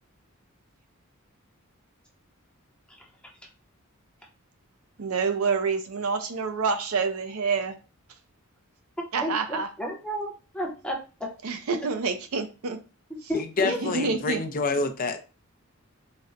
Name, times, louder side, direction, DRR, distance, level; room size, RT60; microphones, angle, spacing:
voice 1, 5.0-7.7 9.1-9.7 11.4-12.8 13.6-14.4, right 5 dB, 75° right, 0.6 m, -27 dB
voice 2, 9.0-11.3 11.8-11.9 13.3-13.8, equal, 5° left, 0.7 m, -32 dB
voice 3, 13.3-15.2, left 3 dB, 40° left, 0.5 m, -28 dB
4.1 x 2.1 x 2.5 m
head